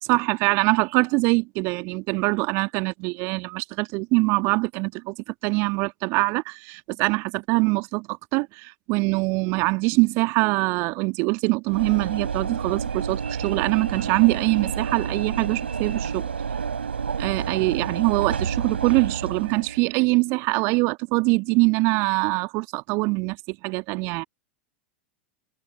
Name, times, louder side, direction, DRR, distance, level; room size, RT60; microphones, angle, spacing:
voice 1, 0.0-5.1 5.4-16.3 17.2-24.2, right 27 dB, 45° right, 2.0 m, -23 dB
Train / Engine / Alarm, 11.7-19.9, right 6 dB, 75° right, 5.7 m, -29 dB
figure-of-eight pair, 85°, 6 cm